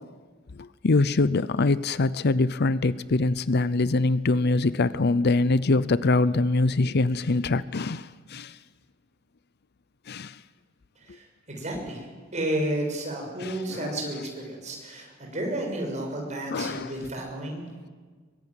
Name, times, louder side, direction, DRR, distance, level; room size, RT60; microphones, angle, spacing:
voice 1, 0.6-8.6 10.1-10.4 13.4-14.0 16.5-16.9, left 3 dB, 50° left, 16 dB, 0.6 m, -24 dB
voice 2, 11.0-12.1 12.3-17.6, right 1 dB, 35° right, 1 dB, 6.5 m, -32 dB
22.5 x 20.5 x 9.3 m, 1.5 s
head